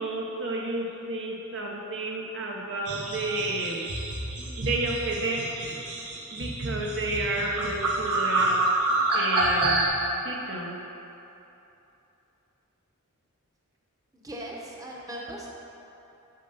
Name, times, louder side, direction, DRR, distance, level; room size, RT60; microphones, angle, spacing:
voice 1, 0.0-3.9 4.6-5.5 6.3-8.7 9.1-9.8 10.2-10.8, right 2 dB, 55° right, -1 dB, 1.0 m, -31 dB
sound 1, 2.9-9.9, right 2 dB, 85° right, 1.5 m, -28 dB
voice 2, 14.2-15.5, right 1 dB, 15° right, -3 dB, 1.0 m, -38 dB
8.2 x 6.5 x 5.7 m, 3.0 s
head